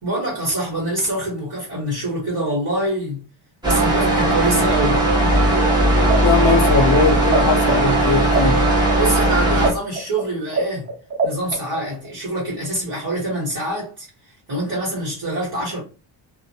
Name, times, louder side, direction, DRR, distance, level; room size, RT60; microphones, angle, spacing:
voice 1, 0.0-3.2 3.6-5.1 9.0-10.9 11.2-14.1 14.5-15.8, right 1 dB, 50° right, 1.3 m, -25 dB
sound 1, 3.6-9.7, right 1 dB, 10° right, 0.8 m, -17 dB
sound 2, 6.0-7.4 7.6-12.1, right 4 dB, 25° right, 0.4 m, -24 dB
voice 2, 6.2-8.6, left 4 dB, 40° left, 0.6 m, -20 dB
2.4 x 2.2 x 2.7 m
wide cardioid pair, 160°, 49 cm